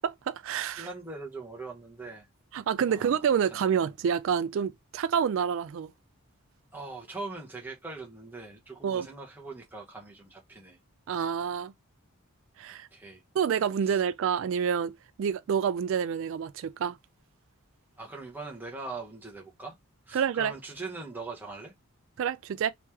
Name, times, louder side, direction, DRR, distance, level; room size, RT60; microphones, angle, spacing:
voice 1, 0.0-0.9 2.5-5.9 8.8-9.1 11.1-11.7 12.6-12.9 13.3-17.0 20.1-20.5 22.2-22.7, right 7 dB, 60° right, 0.3 m, -28 dB
voice 2, 0.8-2.3 2.9-3.2 3.5-3.7 6.7-10.8 12.9-13.2 13.8-14.0 18.0-19.8 20.1-21.7, right 3 dB, 10° right, 0.9 m, -41 dB
3.1 x 2.9 x 3.4 m
head